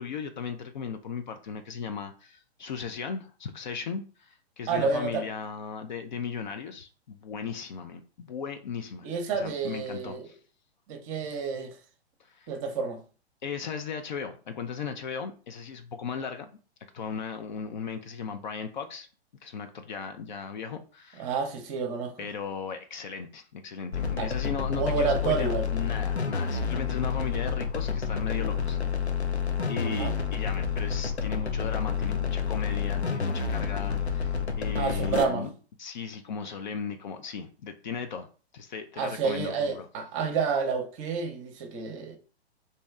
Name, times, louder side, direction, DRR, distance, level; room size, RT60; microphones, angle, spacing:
voice 1, 0.0-9.1 9.3-10.4 12.2-12.5 13.4-16.5 16.9-19.1 19.4-21.3 22.2-28.8 29.7-35.5 35.8-38.3 38.5-39.9, left 6 dB, 45° left, 0.5 m, -37 dB
voice 2, 4.7-5.3 9.0-10.3 10.9-11.7 12.5-13.0 21.2-22.1 24.2-24.3 24.7-25.7 29.9-30.1 34.8-35.5 39.0-42.2, right 5 dB, 30° right, 0.7 m, -29 dB
sound 1, 23.9-35.2, left 6 dB, 80° left, 0.7 m, -29 dB
3.0 x 2.7 x 3.5 m
figure-of-eight pair, 115°, 32 cm